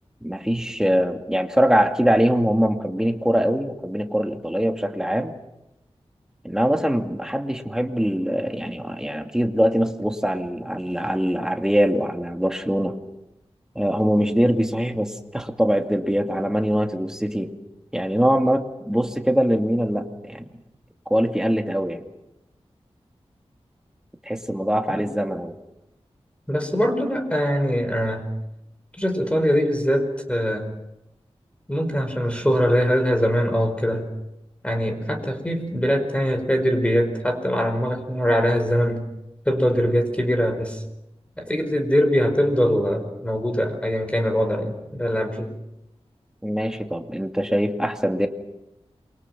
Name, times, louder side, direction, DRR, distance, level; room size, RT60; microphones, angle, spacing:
voice 1, 0.2-5.4 6.4-13.0 13.8-17.5 17.9-20.5 21.1-22.0 24.2-25.6 46.4-48.3, equal, 5° right, 4 dB, 2.3 m, -23 dB
voice 2, 26.5-28.3 29.0-30.7 31.7-34.1 34.6-39.0 39.4-40.8 41.4-45.6, equal, 10° left, 6 dB, 5.1 m, -22 dB
28.0 x 24.0 x 6.1 m, 0.89 s
wide cardioid pair, 85°, 11 cm